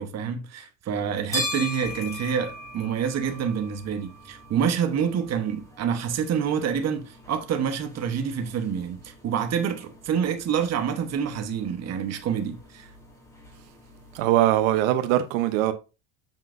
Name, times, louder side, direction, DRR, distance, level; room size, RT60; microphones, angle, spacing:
voice 1, 0.0-12.9, right 7 dB, 40° right, 1.1 m, -27 dB
sound 1, 0.9-14.8, left 1 dB, 10° left, 3.7 m, -40 dB
voice 2, 14.1-15.7, right 13 dB, 85° right, 0.9 m, -21 dB
7.3 x 5.6 x 2.6 m
supercardioid pair, 115°, 40 cm